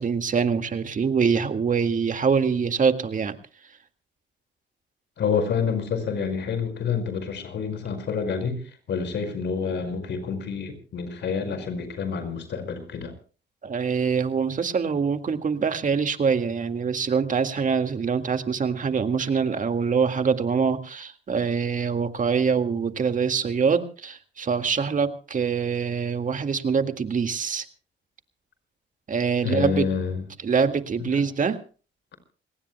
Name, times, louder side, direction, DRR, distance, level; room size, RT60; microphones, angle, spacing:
voice 1, 0.0-3.4 13.6-27.7 29.1-29.9 30.4-31.6, right 6 dB, 40° right, 1.9 m, -24 dB
voice 2, 5.2-8.6 8.9-13.1 29.4-30.2 31.1-31.2, left 6 dB, 65° left, 5.2 m, -28 dB
27.5 x 19.0 x 2.2 m
cardioid pair, 90°, 20 cm